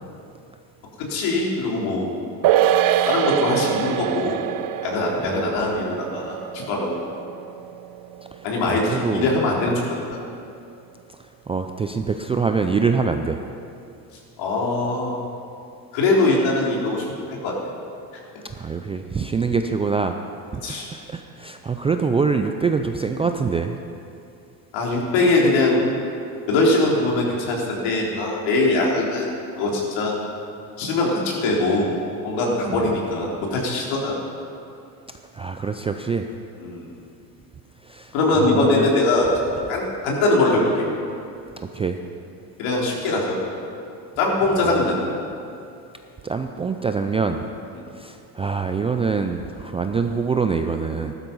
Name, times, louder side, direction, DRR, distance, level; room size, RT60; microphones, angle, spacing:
voice 1, 1.0-2.1 3.0-4.4 4.8-7.0 8.4-10.0 14.4-15.2 15.9-17.1 17.4-17.6 20.6-20.9 24.7-25.8 26.5-29.3 29.6-30.2 30.8-31.9 32.2-34.2 36.6-36.9 38.1-39.3 39.7-40.7 42.6-43.4 44.2-45.0 47.7-47.9, left 2 dB, 65° left, -3 dB, 4.0 m, -22 dB
sound 1, 2.4-9.1 9.4-9.5, right 11 dB, 45° right, 0.7 m, -24 dB
voice 2, 8.6-9.3 11.5-13.4 18.5-20.2 20.5-23.8 32.7-32.9 35.3-36.3 37.8-38.9 41.6-42.0 44.6-44.8 46.2-47.4 47.9-51.1, right 5 dB, 15° right, 6 dB, 0.3 m, -25 dB
14.5 x 12.0 x 5.5 m, 2.6 s
supercardioid pair, 105°, 48 cm